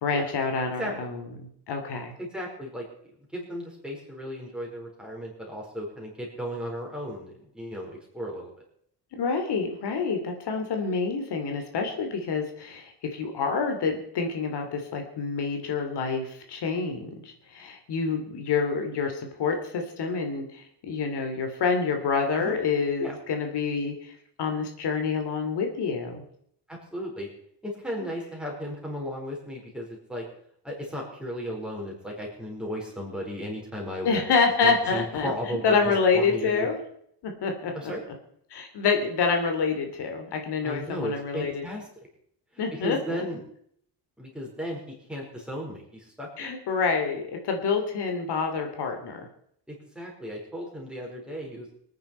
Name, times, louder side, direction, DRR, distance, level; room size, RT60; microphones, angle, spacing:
voice 1, 0.0-2.1 9.1-24.1 24.4-26.2 34.0-36.8 37.2-37.9 38.5-41.6 42.6-43.2 46.4-49.3, left 5 dB, 75° left, 4 dB, 2.8 m, -27 dB
voice 2, 2.2-2.9 3.3-8.5 22.4-22.6 23.0-23.2 26.7-27.3 27.6-30.2 30.6-34.2 34.6-36.7 37.7-38.0 40.6-41.9 42.5-43.4 44.2-46.3 49.7-51.7, equal, ahead, -2 dB, 4.6 m, -35 dB
25.0 x 9.6 x 4.4 m, 0.67 s
wide cardioid pair, 170°, 41 cm